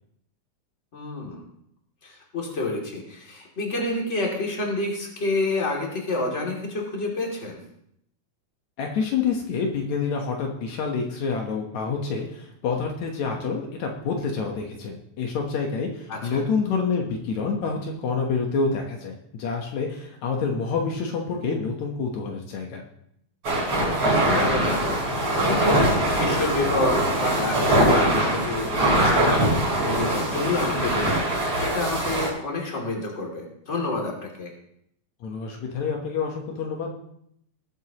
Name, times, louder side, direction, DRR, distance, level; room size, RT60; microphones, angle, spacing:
voice 1, 0.9-1.4 2.0-7.6 16.1-16.4 24.3-25.2 25.5-25.8 26.2-29.4 29.7-34.5, left 2 dB, 25° left, -1 dB, 2.8 m, -29 dB
voice 2, 8.8-22.8 35.2-36.9, left 5 dB, 70° left, 1 dB, 2.5 m, -27 dB
sound 1, 23.4-32.3, right 1 dB, 45° right, 6.3 m, -22 dB
20.0 x 9.1 x 3.0 m, 0.72 s
omnidirectional pair, 3.4 m